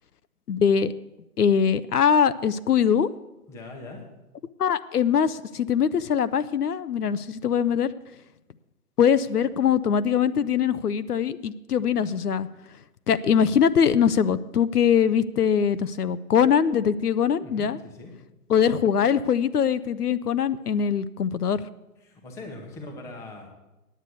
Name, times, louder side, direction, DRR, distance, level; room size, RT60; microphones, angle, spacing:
voice 1, 0.5-0.9 1.4-3.1 4.6-7.9 9.0-12.5 13.1-17.8 18.5-21.6, left 7 dB, 75° left, 14 dB, 0.7 m, -22 dB
voice 2, 3.5-4.0 17.4-18.1 22.0-23.5, left 2 dB, 5° left, 2 dB, 0.9 m, -41 dB
9.6 x 8.3 x 8.2 m, 0.98 s
figure-of-eight pair, 140°, 47 cm